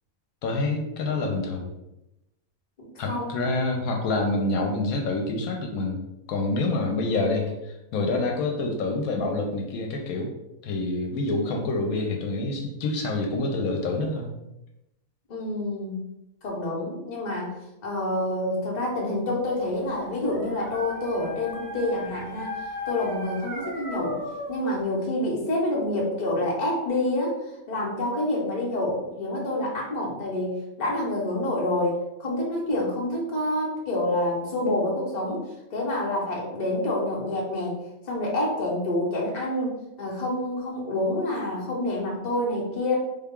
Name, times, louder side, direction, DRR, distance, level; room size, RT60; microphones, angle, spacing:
voice 1, 0.4-1.7 3.0-10.3 10.6-14.3, left 2 dB, 85° left, 2 dB, 1.1 m, -27 dB
voice 2, 2.9-3.4 15.3-16.1 16.4-17.5 17.8-22.5 22.9-24.2 24.5-27.4 27.7-35.4 35.7-37.8 38.1-43.0, left 1 dB, 35° left, -4 dB, 0.9 m, -27 dB
Dog, 19.6-24.7, left 2 dB, 60° right, 1.3 m, -36 dB
3.6 x 2.3 x 3.6 m, 0.92 s
omnidirectional pair, 1.5 m